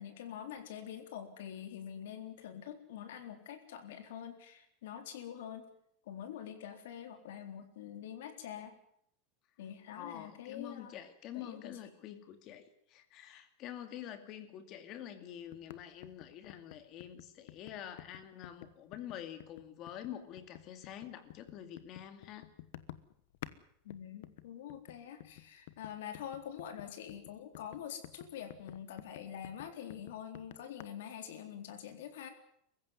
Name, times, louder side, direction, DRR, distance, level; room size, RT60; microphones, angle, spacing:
voice 1, 0.0-5.7 6.0-8.7 9.6-10.9 11.3-11.8 23.8-32.3, left 9 dB, 80° left, 7 dB, 3.9 m, -45 dB
voice 2, 9.9-22.5, left 10 dB, 35° left, 10 dB, 2.3 m, -47 dB
sound 1, 15.5-23.6 23.9-30.8, left 14 dB, 65° left, 1.2 m, -51 dB
24.0 x 15.5 x 9.5 m, 0.73 s
supercardioid pair, 175°, 0 cm